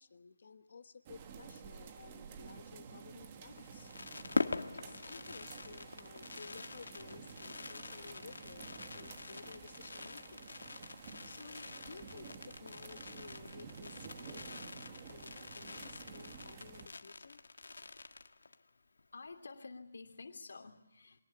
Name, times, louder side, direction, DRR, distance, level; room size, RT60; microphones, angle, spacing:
voice 1, 0.0-3.9 4.7-10.4 11.2-17.4, left 4 dB, 40° left, 10 dB, 1.4 m, -55 dB
sound 1, 1.0-16.9, right 6 dB, 20° right, 1.3 m, -52 dB
Fireworks, 3.5-18.7 19.0-19.1 19.3-19.6, left 3 dB, 85° left, 1.6 m, -44 dB
voice 2, 19.1-21.2, left 3 dB, 60° left, 4 dB, 2.8 m, -50 dB
25.0 x 19.0 x 9.9 m, 0.81 s
hypercardioid pair, 180°, 0 cm